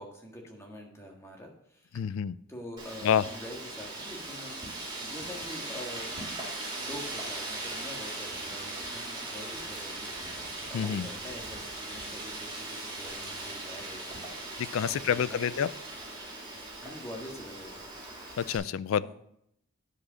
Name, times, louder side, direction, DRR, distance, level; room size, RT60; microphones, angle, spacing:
voice 1, 0.0-2.0 2.5-6.4 6.7-10.1 10.7-14.2 14.8-15.7 16.8-17.9 19.0-19.1, left 1 dB, 15° left, 0 dB, 1.6 m, -45 dB
voice 2, 1.9-2.4 3.0-3.2 10.7-11.1 14.6-15.7 18.4-19.1, left 8 dB, 70° left, 18 dB, 0.3 m, -28 dB
Wind, 2.8-18.6, right 2 dB, 20° right, 2.5 m, -39 dB
9.8 x 4.9 x 6.2 m, 0.75 s
head